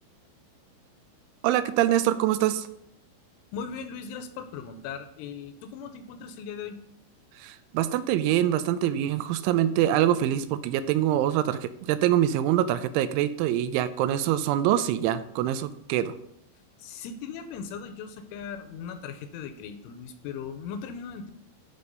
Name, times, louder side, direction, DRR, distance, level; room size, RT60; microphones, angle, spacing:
voice 1, 1.4-2.7 7.4-16.1, right 12 dB, 85° right, 11 dB, 2.9 m, -24 dB
voice 2, 3.5-6.8 16.8-21.3, left 6 dB, 85° left, 9 dB, 3.1 m, -38 dB
12.5 x 4.3 x 5.3 m, 0.72 s
omnidirectional pair, 5.7 m